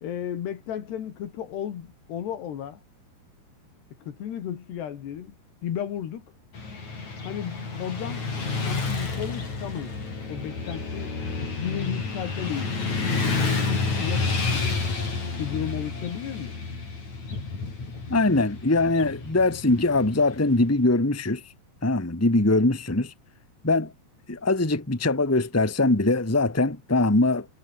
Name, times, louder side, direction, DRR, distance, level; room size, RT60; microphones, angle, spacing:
voice 1, 0.0-2.8 4.0-5.4 5.6-6.3 7.2-8.3 8.6-9.9 10.3-11.1 11.6-14.8 15.4-16.6, left 9 dB, 80° left, 4.6 m, -34 dB
Motorcycle / Traffic noise roadway noise, 6.5-20.7, left 4 dB, 45° left, 7.5 m, -30 dB
voice 2, 18.1-21.4 21.8-23.1 23.6-23.9 24.3-27.5, left 2 dB, 5° left, 1.7 m, -22 dB
omnidirectional pair, 4.8 m